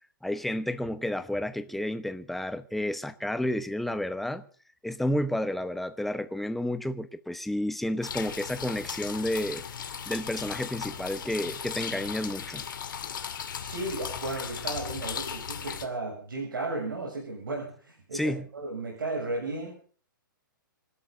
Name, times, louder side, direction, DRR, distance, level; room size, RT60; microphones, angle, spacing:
voice 1, 0.2-4.4 4.8-9.6 10.1-12.6 18.1-18.5, left 1 dB, ahead, 0.9 m, -31 dB
sound 1, 8.0-15.9, left 7 dB, 70° left, 2.4 m, -37 dB
voice 2, 13.6-19.7, right 2 dB, 75° right, 7.2 m, -34 dB
27.5 x 12.5 x 3.9 m
figure-of-eight pair, 120°, 11 cm